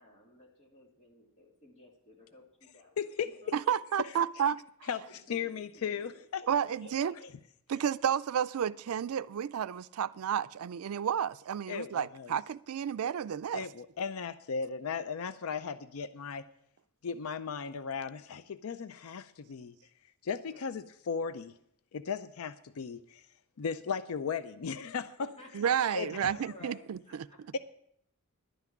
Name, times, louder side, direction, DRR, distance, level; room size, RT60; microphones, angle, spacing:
voice 1, 0.0-3.0 3.4-3.7 5.1-7.2 20.4-20.9 25.2-27.4, left 2 dB, 35° left, 3.2 m, -55 dB
voice 2, 3.0-3.3 4.9-6.4 11.7-12.4 13.5-16.4 17.0-19.8 20.2-21.5 21.9-23.2 23.6-25.3 25.9-26.3 27.5-27.6, left 6 dB, 80° left, 0.5 m, -36 dB
voice 3, 3.5-4.6 6.5-7.1 7.7-13.7 25.5-27.0, right 8 dB, 90° right, 0.4 m, -31 dB
11.5 x 6.0 x 9.1 m
head